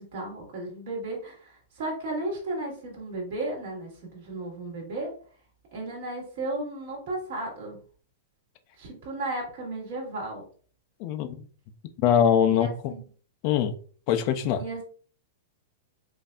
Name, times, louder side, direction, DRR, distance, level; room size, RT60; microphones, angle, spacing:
voice 1, 0.0-5.1 5.7-7.8 8.8-10.5 12.5-13.0 14.6-14.8, right 2 dB, 45° right, 1.9 m, -34 dB
voice 2, 12.0-12.9 13.4-13.7 14.1-14.6, left 9 dB, 30° left, 0.5 m, -22 dB
5.4 x 2.6 x 2.4 m
supercardioid pair, 175°, 0 cm